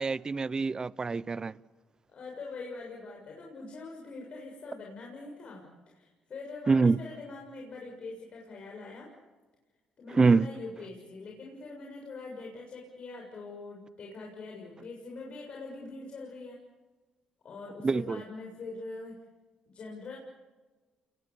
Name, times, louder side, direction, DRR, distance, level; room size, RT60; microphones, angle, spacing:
voice 1, 0.0-1.5 6.7-7.0 10.1-10.5 17.8-18.2, right 4 dB, 30° right, 20 dB, 0.7 m, -25 dB
voice 2, 2.1-9.1 10.0-16.6 17.4-19.2 19.7-20.2, left 3 dB, 55° left, 0 dB, 6.9 m, -43 dB
29.5 x 21.5 x 8.4 m, 1.3 s
supercardioid pair, 75°, 2 cm